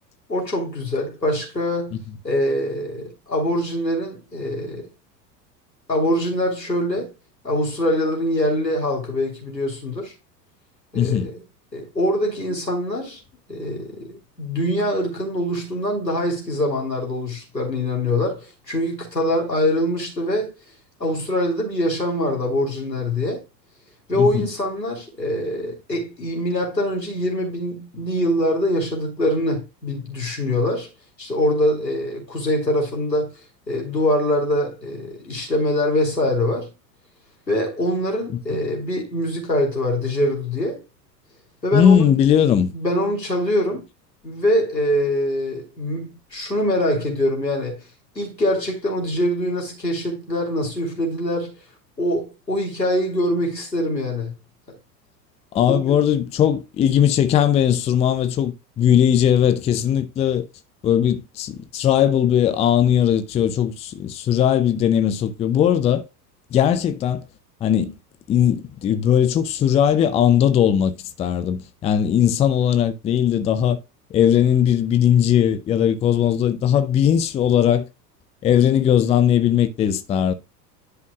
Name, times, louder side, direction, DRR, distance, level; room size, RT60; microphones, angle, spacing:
voice 1, 0.3-2.0 2.2-4.9 5.9-7.1 7.4-10.1 10.9-11.3 11.7-13.2 13.5-20.5 21.0-23.4 24.1-30.9 31.2-33.3 33.7-36.7 37.5-40.8 41.6-42.1 42.7-43.8 44.2-47.8 48.1-51.5 52.0-54.3 55.7-56.0, left 1 dB, 85° left, 3.2 m, -23 dB
voice 2, 10.9-11.3 24.1-24.5 38.3-38.4 41.7-42.7 55.5-60.4 60.8-66.0 66.5-67.2 67.6-67.9 68.3-73.8 74.1-77.9 78.4-80.3, left 9 dB, 15° left, 0.5 m, -19 dB
10.5 x 5.7 x 2.3 m
figure-of-eight pair, 85°, 50 cm